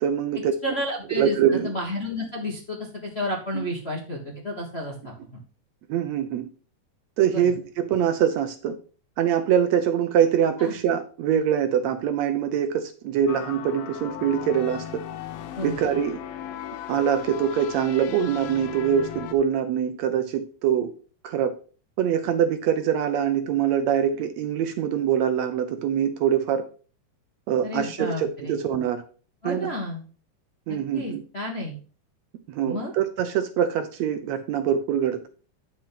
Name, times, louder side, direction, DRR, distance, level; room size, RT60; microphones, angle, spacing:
voice 1, 0.0-0.5 1.2-1.7 3.5-3.7 5.9-6.5 7.2-8.8 9.2-15.0 15.6-16.2 16.9-20.9 21.2-21.5 22.0-26.6 27.5-29.0 29.4-29.7 30.7-31.2 32.5-35.3, right 9 dB, 75° right, 8 dB, 1.8 m, -24 dB
voice 2, 0.6-5.4 7.3-7.4 10.6-10.7 15.6-15.8 27.6-28.5 29.4-30.0 30.7-31.8 32.6-32.9, left 1 dB, 35° left, -1 dB, 1.0 m, -31 dB
sound 1, 13.3-19.3, left 10 dB, 80° left, 1.3 m, -37 dB
10.5 x 4.6 x 5.7 m, 0.39 s
omnidirectional pair, 3.5 m